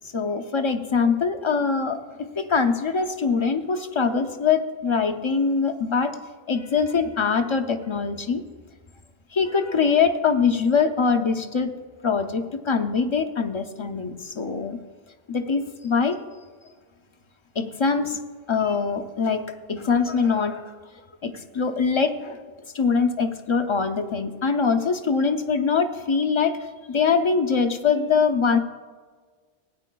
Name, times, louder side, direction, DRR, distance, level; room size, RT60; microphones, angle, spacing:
voice 1, 0.1-6.2 6.5-8.4 9.3-11.7 12.0-14.8 15.3-16.2 17.6-18.2 18.5-20.8 21.2-22.4 22.7-28.6, left 5 dB, 35° left, 7 dB, 0.5 m, -23 dB
18.0 x 9.1 x 2.3 m, 1.5 s
omnidirectional pair, 1.0 m